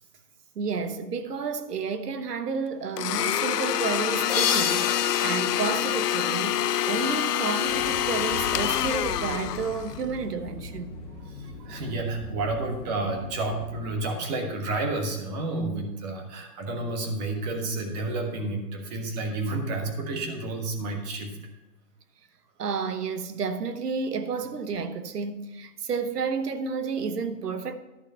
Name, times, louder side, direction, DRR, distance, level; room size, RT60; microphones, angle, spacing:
voice 1, 0.5-10.9 11.6-11.8 22.6-27.7, right 5 dB, 75° right, 1.2 m, -31 dB
Domestic sounds home sounds, 3.0-10.0, left 11 dB, 75° left, 0.6 m, -26 dB
sound 1, 4.3-7.0, left 8 dB, 40° left, 1.3 m, -31 dB
sound 2, 7.7-13.7, left 2 dB, 10° left, 2.2 m, -40 dB
voice 2, 11.3-21.4, right 2 dB, 25° right, 1.4 m, -30 dB
11.5 x 6.5 x 5.5 m
hypercardioid pair, 150°, 47 cm